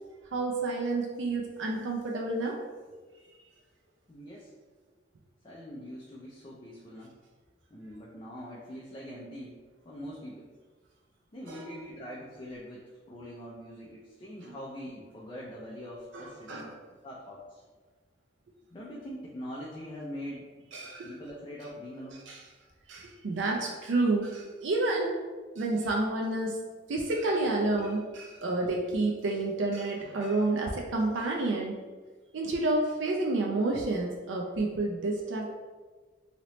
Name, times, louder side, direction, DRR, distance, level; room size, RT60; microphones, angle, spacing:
voice 1, 0.3-2.6 11.5-11.7 14.4-14.5 16.1-16.7 20.7-21.1 22.3-22.4 22.9-25.2 25.6-26.6 26.9-31.8 32.3-35.5, right 2 dB, 75° right, -1 dB, 0.4 m, -29 dB
voice 2, 4.1-4.5 5.4-7.1 7.7-9.6 9.8-10.5 11.3-16.7 17.0-17.6 18.7-20.6 21.0-22.3 30.0-30.2, equal, 25° left, -5 dB, 0.4 m, -43 dB
3.0 x 2.8 x 3.0 m, 1.4 s
head